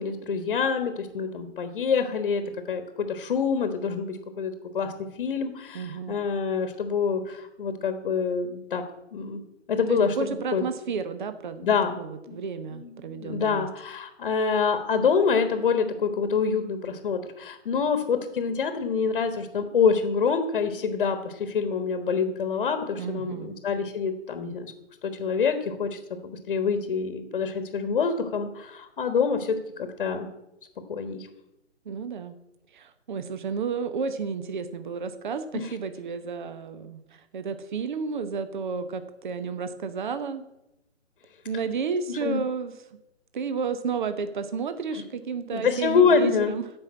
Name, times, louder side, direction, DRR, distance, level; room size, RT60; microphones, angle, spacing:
voice 1, 0.0-2.4 2.7-4.9 5.2-8.8 9.1-9.4 9.7-10.6 11.6-12.0 12.3-12.4 12.7-24.7 25.0-30.3 30.9-31.3 35.5-35.7 42.1-42.4 45.5-46.5, left 5 dB, 45° left, 8 dB, 1.3 m, -26 dB
voice 2, 5.7-6.2 9.9-13.7 23.0-23.6 31.8-32.4 32.7-40.4 41.4-42.7 43.3-46.7, right 5 dB, 40° right, 10 dB, 1.0 m, -32 dB
14.5 x 5.5 x 8.5 m, 0.90 s
hypercardioid pair, 160°, 37 cm